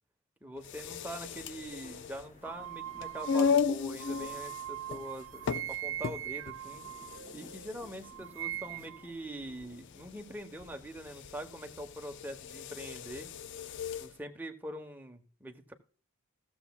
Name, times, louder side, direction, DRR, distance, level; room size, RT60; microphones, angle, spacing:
voice 1, 0.4-6.8 7.3-13.3 14.0-15.7, right 1 dB, 10° right, 4 dB, 1.1 m, -43 dB
sound 1, 0.6-14.1, left 6 dB, 60° left, 0.5 m, -36 dB
sound 2, 0.9-11.3, left 2 dB, 35° left, 1.8 m, -60 dB
sound 3, 2.4-7.7 8.0-9.1, right 12 dB, 65° right, 0.5 m, -41 dB
16.5 x 7.1 x 2.3 m, 0.40 s
head